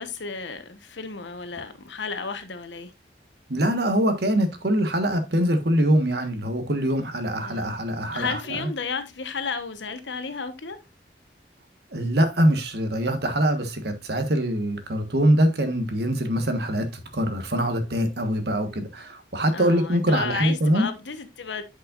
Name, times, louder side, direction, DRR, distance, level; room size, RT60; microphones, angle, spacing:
voice 1, 0.0-2.9 7.4-7.6 8.1-10.8 19.5-21.6, left 5 dB, 85° left, 1.2 m, -33 dB
voice 2, 3.5-8.7 11.9-20.9, right 1 dB, 65° right, 1.4 m, -23 dB
10.5 x 5.5 x 2.5 m
head